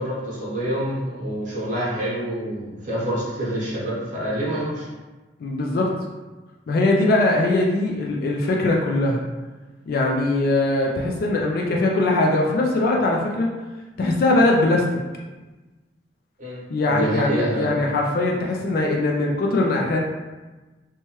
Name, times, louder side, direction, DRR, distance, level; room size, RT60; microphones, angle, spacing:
voice 1, 0.0-4.9 16.4-17.7, equal, 45° right, -8 dB, 0.9 m, -27 dB
voice 2, 5.4-5.9 6.7-9.3 9.9-13.5 14.0-14.9 16.7-20.0, left 2 dB, 55° left, -1 dB, 0.3 m, -21 dB
3.0 x 2.2 x 3.0 m, 1.2 s
head